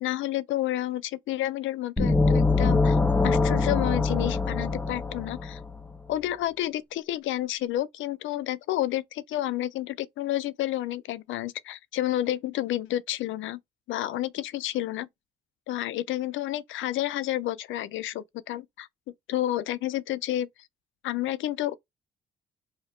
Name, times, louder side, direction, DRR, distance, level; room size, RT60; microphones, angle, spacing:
voice 1, 0.0-3.0 3.2-5.6 6.1-13.6 13.9-15.1 15.7-18.9 19.3-20.5 21.0-21.7, left 14 dB, 75° left, 0.5 m, -30 dB
sound 1, 2.0-5.7, left 3 dB, 10° left, 0.5 m, -23 dB
2.9 x 2.7 x 4.3 m
cardioid pair, 90°, 20 cm